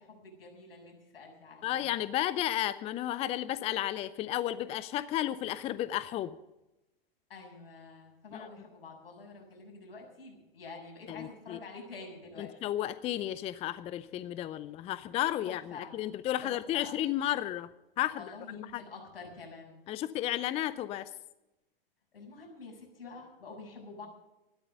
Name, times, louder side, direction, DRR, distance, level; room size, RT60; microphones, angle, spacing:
voice 1, 0.0-2.0 7.3-12.5 15.4-15.9 16.4-16.9 18.1-19.8 22.1-24.1, left 4 dB, 75° left, 0 dB, 7.1 m, -48 dB
voice 2, 1.6-6.4 11.1-11.6 12.4-17.7 18.0-18.8 19.9-21.1, left 13 dB, 20° left, 15 dB, 0.5 m, -33 dB
14.0 x 12.5 x 6.8 m, 0.97 s
hypercardioid pair, 115°, 29 cm